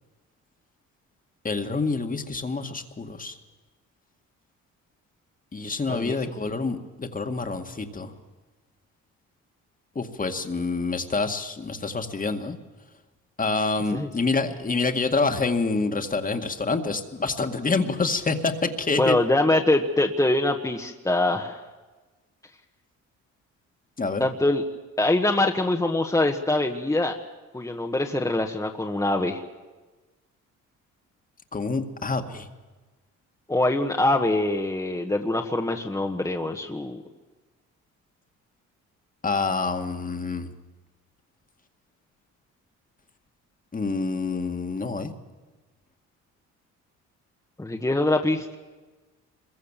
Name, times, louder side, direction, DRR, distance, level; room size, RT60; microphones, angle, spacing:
voice 1, 1.4-3.3 5.5-8.1 10.0-12.6 13.4-19.2 24.0-24.2 31.5-32.5 39.2-40.5 43.7-45.1, left 3 dB, 25° left, 7 dB, 2.1 m, -27 dB
voice 2, 5.9-6.2 13.9-14.1 19.0-21.6 24.2-24.6 25.0-27.2 27.5-29.4 33.5-37.0 47.6-48.6, left 2 dB, 10° left, 2 dB, 1.5 m, -24 dB
26.0 x 22.5 x 7.5 m, 1.3 s
cardioid pair, 90°, 30 cm